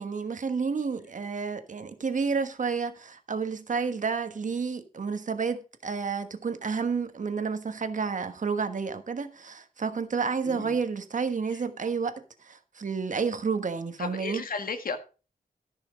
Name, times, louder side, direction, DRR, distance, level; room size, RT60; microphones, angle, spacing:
voice 1, 0.0-14.4, right 5 dB, 55° right, 1.3 m, -30 dB
voice 2, 10.4-10.7 11.5-11.6 14.0-15.0, left 4 dB, 65° left, 1.8 m, -34 dB
14.0 x 6.1 x 5.1 m
wide cardioid pair, 115°, 16 cm